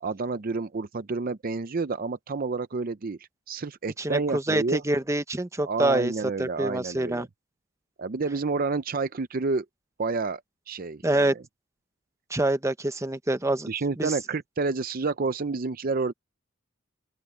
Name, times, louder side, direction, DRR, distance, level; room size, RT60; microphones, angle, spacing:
voice 1, 0.0-3.2 3.5-4.8 5.6-7.3 8.0-9.6 10.0-10.4 10.7-11.4 13.7-16.1, right 3 dB, 45° right, 0.5 m, -29 dB
voice 2, 4.0-6.1 6.4-7.3 11.0-11.3 12.3-13.7 14.0-14.1, right 1 dB, 15° right, 0.8 m, -26 dB
open air
head